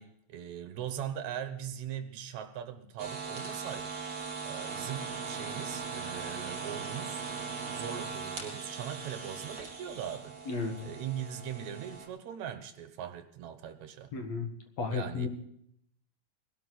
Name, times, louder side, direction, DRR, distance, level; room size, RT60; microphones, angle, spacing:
voice 1, 0.0-3.9 4.4-7.2 7.7-10.4 10.8-14.1 14.9-15.3, right 9 dB, 65° right, 9 dB, 2.2 m, -40 dB
sound 1, 3.0-12.1, right 5 dB, 40° right, 4.3 m, -39 dB
voice 2, 14.1-14.5 14.8-15.3, left 4 dB, 55° left, 4 dB, 2.6 m, -33 dB
21.0 x 12.5 x 4.0 m, 0.73 s
omnidirectional pair, 4.1 m